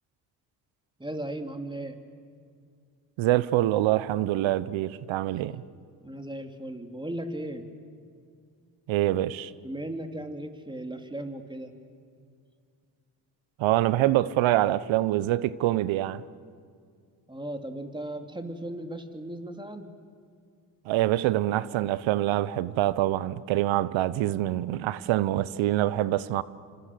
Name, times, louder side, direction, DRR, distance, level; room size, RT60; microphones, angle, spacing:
voice 1, 1.0-2.0 6.0-7.7 9.6-11.7 17.3-19.9, right 1 dB, 10° right, 3.1 m, -36 dB
voice 2, 3.2-5.6 8.9-9.5 13.6-16.2 20.9-26.4, right 14 dB, 75° right, 0.9 m, -25 dB
28.0 x 25.5 x 7.8 m
supercardioid pair, 55°, 47 cm